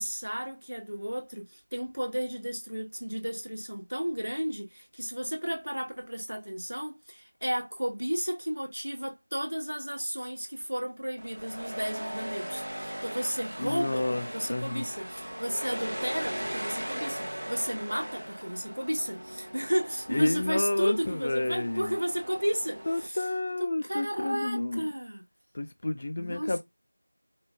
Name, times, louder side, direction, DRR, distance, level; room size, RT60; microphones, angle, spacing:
voice 1, 0.0-23.2 23.6-25.2 26.2-26.6, equal, 80° right, 1.2 m, -33 dB
sound 1, 11.2-23.1, equal, 65° right, 0.9 m, -39 dB
voice 2, 13.6-14.8 20.1-22.0 22.9-24.9 25.5-26.6, left 2 dB, 20° left, 0.3 m, -30 dB
4.5 x 2.3 x 3.3 m
figure-of-eight pair, 180°, 0 cm